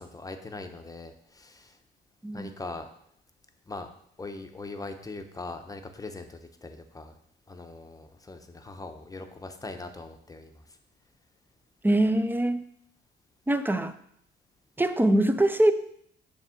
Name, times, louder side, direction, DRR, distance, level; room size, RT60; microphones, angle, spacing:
voice 1, 0.0-1.8 2.3-2.9 3.7-3.9 4.2-7.2 7.5-10.8, left 3 dB, 15° left, 6 dB, 0.8 m, -41 dB
voice 2, 11.8-12.6 13.5-13.9 14.8-15.7, right 1 dB, 10° right, 10 dB, 0.5 m, -23 dB
7.2 x 3.5 x 5.7 m, 0.70 s
cardioid pair, 90°, 20 cm